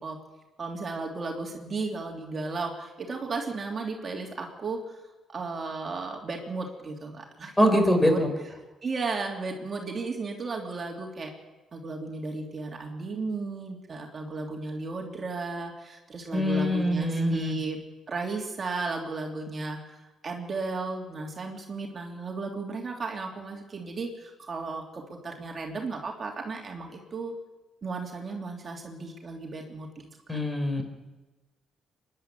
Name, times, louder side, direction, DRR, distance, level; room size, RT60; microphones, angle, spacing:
voice 1, 0.6-5.0 5.3-7.5 8.0-8.2 8.8-11.3 11.7-17.8 18.1-27.3 27.8-30.4, right 3 dB, 40° right, 1 dB, 3.1 m, -34 dB
voice 2, 7.6-8.3 16.3-17.6 30.3-30.8, equal, 10° left, 5 dB, 4.6 m, -23 dB
24.0 x 11.0 x 9.6 m, 1.2 s
cardioid pair, 90°, 0 cm